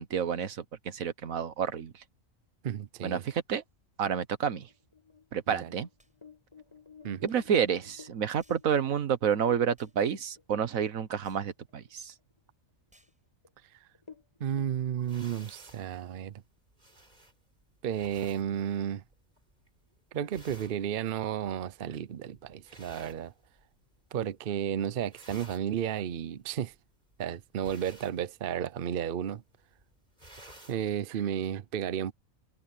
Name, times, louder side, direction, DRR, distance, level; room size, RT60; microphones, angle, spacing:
voice 1, 0.0-2.0 3.0-3.6 4.0-4.7 5.3-5.9 7.2-12.1, right 7 dB, 80° right, 1.5 m, -29 dB
voice 2, 2.6-3.2 5.5-5.7 7.0-7.3 14.4-16.4 17.8-19.0 20.1-23.3 24.1-26.7 27.2-29.4 30.7-32.1, right 9 dB, 50° right, 0.7 m, -33 dB
sound 1, 4.7-10.5 10.9-11.0 11.4-11.9 12.3-12.4 13.1-13.2 13.4-13.6 14.0-15.1, left 5 dB, 20° left, 4.7 m, -54 dB
sound 2, 6.0-6.2 7.3-7.4 8.4-8.7 9.8-10.0 11.2-11.5 12.9-13.2, equal, 5° right, 7.4 m, -65 dB
sound 3, 15.0-24.0 24.3-24.7 24.9-30.9, right 1 dB, 30° right, 5.0 m, -55 dB
omnidirectional pair, 1.4 m